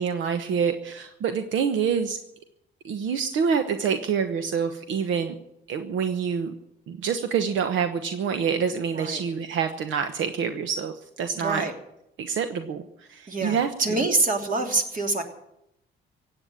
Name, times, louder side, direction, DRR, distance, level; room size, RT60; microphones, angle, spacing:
voice 1, 0.0-2.2 2.8-5.4 5.7-6.5 6.9-11.7 12.2-14.0, right 6 dB, 80° right, 8 dB, 1.1 m, -27 dB
voice 2, 11.3-11.7 13.3-15.2, right 3 dB, 40° right, 3 dB, 3.1 m, -26 dB
16.5 x 8.8 x 10.0 m, 0.81 s
cardioid pair, 90°, 20 cm